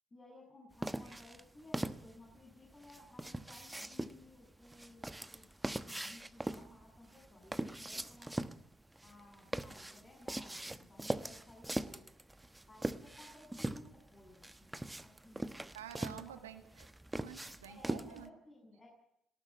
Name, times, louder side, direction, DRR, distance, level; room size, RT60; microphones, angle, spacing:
voice 1, 0.1-5.5 5.8-8.4 9.0-12.0 12.7-15.5 16.0-16.3 17.7-18.9, left 1 dB, 30° left, -1 dB, 7.1 m, -58 dB
sound 1, 0.8-18.3, right 1 dB, 10° right, 1.1 m, -41 dB
voice 2, 15.7-16.9 17.1-18.3, right 10 dB, 80° right, 8 dB, 2.0 m, -50 dB
19.0 x 18.5 x 8.4 m, 0.78 s
figure-of-eight pair, 45°, 0 cm